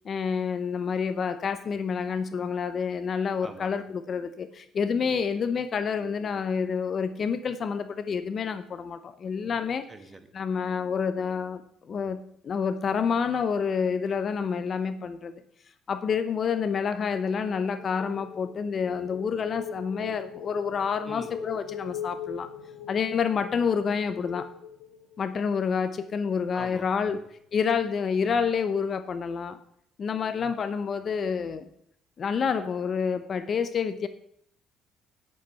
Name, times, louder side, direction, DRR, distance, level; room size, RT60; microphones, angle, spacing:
voice 1, 0.0-9.9 10.3-15.4 15.9-22.5 22.9-24.5 25.2-27.2 27.5-29.6 30.0-31.7 32.2-34.1, left 6 dB, 40° left, 0.7 m, -28 dB
voice 2, 3.4-3.7 9.9-10.3 21.1-21.3 26.5-27.3, right 2 dB, 20° right, 1.3 m, -44 dB
sound 1, 17.1-25.5, left 6 dB, 80° left, 2.3 m, -41 dB
10.0 x 7.9 x 5.6 m
cardioid pair, 120°, 0 cm